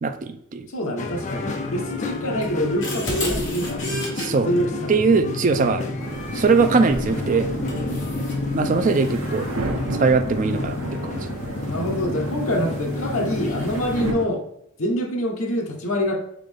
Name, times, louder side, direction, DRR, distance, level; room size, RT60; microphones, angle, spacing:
voice 1, 0.0-0.7 4.2-4.5 4.9-5.9 6.3-7.5 8.5-9.5 10.0-11.3, right 4 dB, 35° right, 8 dB, 0.3 m, -21 dB
voice 2, 0.7-3.8 4.3-5.0 6.2-6.3 11.6-14.4 14.8-16.2, equal, 70° left, 2 dB, 0.9 m, -26 dB
sound 1, 1.0-14.2, left 2 dB, 35° left, 0.4 m, -30 dB
sound 2, 2.4-4.3 6.9-7.1 7.7-8.4, left 1 dB, 55° left, 1.4 m, -29 dB
sound 3, 6.0-14.1, right 2 dB, 75° right, 0.6 m, -33 dB
4.2 x 3.8 x 3.4 m, 0.72 s
head